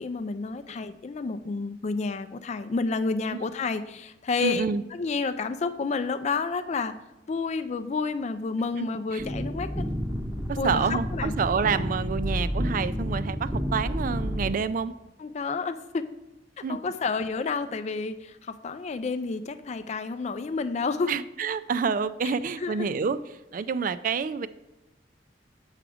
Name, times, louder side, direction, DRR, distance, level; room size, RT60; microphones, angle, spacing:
voice 1, 0.0-6.9 7.3-9.9 10.6-11.4 15.2-16.0 16.7-21.2 22.6-22.9, left 4 dB, 35° left, 10 dB, 0.4 m, -30 dB
voice 2, 4.4-4.8 8.8-8.9 9.1-9.2 10.5-14.9 16.6-16.8 21.1-23.2 23.5-24.5, right 5 dB, 45° right, 13 dB, 0.4 m, -28 dB
sound 1, 9.2-14.5, equal, 10° right, 0.8 m, -30 dB
7.9 x 4.9 x 4.9 m, 0.99 s
head